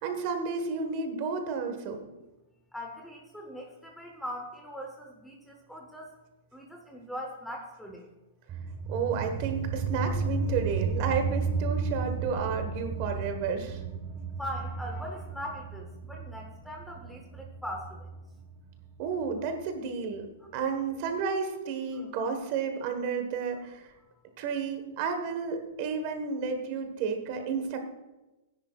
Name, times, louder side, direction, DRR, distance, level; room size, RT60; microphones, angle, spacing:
voice 1, 0.0-2.1 8.9-13.8 19.0-20.3 20.5-23.9 24.4-27.8, right 5 dB, 35° right, 6 dB, 1.4 m, -31 dB
voice 2, 2.7-6.1 6.5-8.1 14.4-18.1 20.7-20.8 21.9-22.5, equal, ahead, 1 dB, 0.9 m, -41 dB
sound 1, 8.5-19.6, right 4 dB, 20° right, 1.3 m, -34 dB
17.0 x 10.0 x 2.4 m, 1.0 s
supercardioid pair, 170°, 0 cm